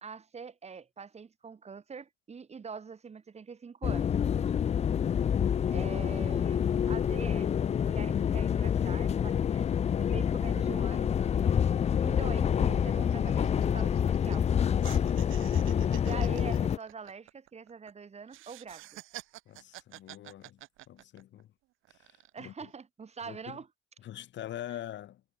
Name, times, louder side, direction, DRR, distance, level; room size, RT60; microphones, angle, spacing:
voice 1, 0.0-4.1 5.7-6.6 6.9-7.5 7.8-9.7 10.0-11.1 12.0-14.5 16.0-18.8 22.3-23.7, right 5 dB, 35° right, 1.1 m, -44 dB
sound 1, 3.8-16.8, left 8 dB, 35° left, 0.4 m, -27 dB
sound 2, 12.0-12.1 12.4-12.6 12.9-14.5 14.8-17.9 18.3-21.4 21.8-22.4, right 17 dB, 90° right, 0.9 m, -48 dB
voice 2, 19.5-21.5 21.9-22.7 23.2-23.6 24.0-25.2, left 12 dB, 65° left, 0.8 m, -44 dB
cardioid pair, 90°, 20 cm